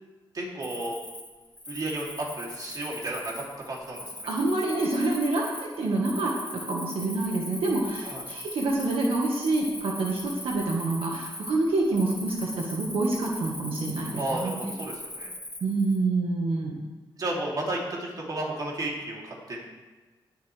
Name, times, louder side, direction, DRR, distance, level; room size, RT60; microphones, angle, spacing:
voice 1, 0.3-1.0 1.7-4.3 8.0-8.2 14.1-15.3 17.1-19.6, right 1 dB, 45° right, -3 dB, 3.2 m, -33 dB
Cricket, 0.6-16.0, left 1 dB, 15° left, 2.2 m, -40 dB
voice 2, 4.3-14.7 15.6-16.8, right 2 dB, 85° right, -2 dB, 1.7 m, -27 dB
20.0 x 8.1 x 3.5 m, 1.3 s
wide cardioid pair, 135°, 9 cm